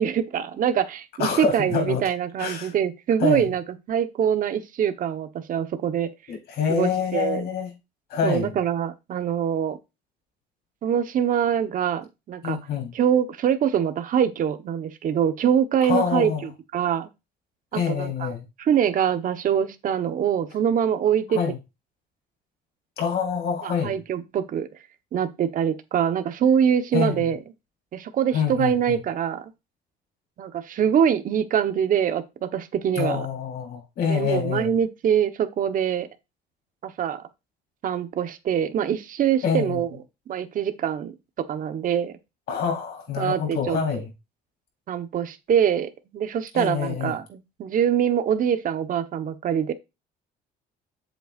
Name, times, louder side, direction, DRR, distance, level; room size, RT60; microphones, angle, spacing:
voice 1, 0.0-3.6 3.9-6.1 6.7-7.5 8.2-9.8 10.8-12.6 12.9-17.1 17.7-18.3 18.6-21.4 23.6-24.7 25.1-27.4 27.9-29.4 30.4-33.3 34.0-36.1 36.8-37.2 37.8-39.9 40.3-42.1 43.2-44.0 44.9-49.7, right 8 dB, 55° right, 1.2 m, -24 dB
voice 2, 1.2-2.0 2.4-2.7 3.2-3.5 6.3-7.7 8.1-8.5 12.4-12.9 15.9-16.5 17.7-18.4 21.3-21.6 23.0-23.9 26.9-27.2 28.3-29.0 33.0-34.7 39.4-39.8 42.5-44.1 46.5-47.1, left 6 dB, 70° left, 3.8 m, -26 dB
7.9 x 7.8 x 2.5 m
cardioid pair, 110°, 17 cm